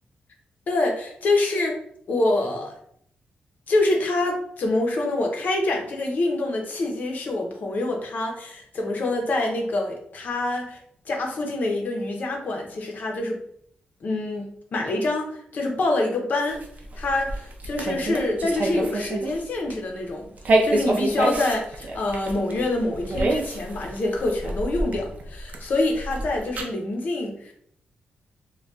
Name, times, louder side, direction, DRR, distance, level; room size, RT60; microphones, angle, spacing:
voice 1, 0.7-1.8 2.1-2.7 3.7-10.8 11.1-13.4 14.0-16.6 16.9-20.2 20.6-27.5, left 2 dB, 55° left, 1 dB, 0.6 m, -26 dB
sound 1, 16.5-19.4 19.7-19.9 20.4-26.6, right 2 dB, 50° right, 0.5 m, -27 dB
2.3 x 2.2 x 3.9 m, 0.66 s
wide cardioid pair, 140°, 3 cm